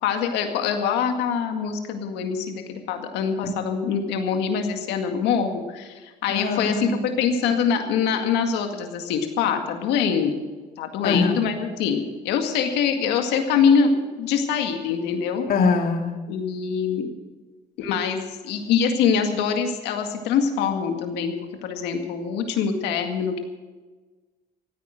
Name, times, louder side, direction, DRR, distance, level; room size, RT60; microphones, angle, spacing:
voice 1, 0.0-10.3 10.8-15.5 16.3-17.1 17.8-21.3 21.6-23.4, left 6 dB, 90° left, 5 dB, 2.1 m, -24 dB
voice 2, 6.3-6.9 11.0-11.4 15.5-16.1, left 4 dB, 60° left, 4 dB, 2.3 m, -22 dB
15.0 x 9.5 x 7.8 m, 1.3 s
cardioid pair, 110°, 17 cm